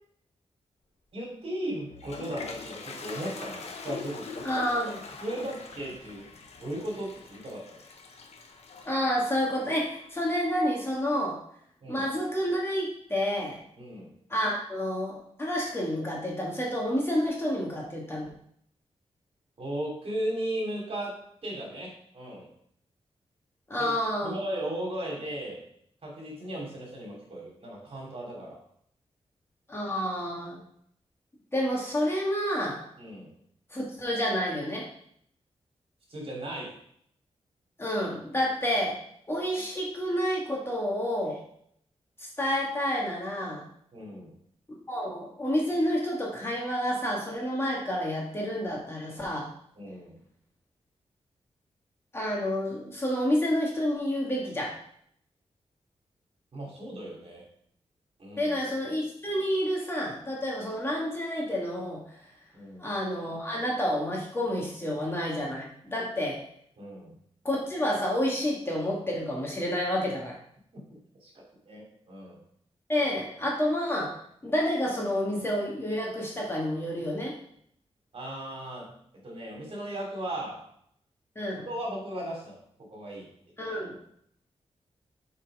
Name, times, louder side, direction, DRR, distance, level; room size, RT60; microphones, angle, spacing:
voice 1, 1.1-4.5 5.2-6.3 6.6-7.8 11.8-12.0 13.8-14.1 19.6-22.5 23.8-23.9 24.2-25.6 26.0-28.6 33.0-33.3 36.1-36.8 43.9-44.3 49.8-50.2 56.5-57.4 58.2-58.6 62.5-62.9 66.8-67.2 70.7-72.4 78.1-78.9 79.2-80.6 81.6-83.3, right 1 dB, 55° right, -2 dB, 3.1 m, -36 dB
Toilet flush, 1.6-10.5, left 4 dB, 70° left, 1.1 m, -43 dB
voice 2, 4.4-5.0 8.9-11.4 11.9-13.6 14.3-18.3 23.7-24.4 29.7-30.6 31.5-32.8 33.7-34.9 37.8-39.0 39.3-41.4 42.2-43.7 44.9-49.5 52.1-54.7 58.4-62.2 62.8-66.4 67.4-70.4 72.9-74.2 74.4-77.4 81.4-81.7 83.6-84.1, equal, 20° left, -3 dB, 2.1 m, -29 dB
7.7 x 4.5 x 4.9 m, 0.68 s
wide cardioid pair, 135°, 11 cm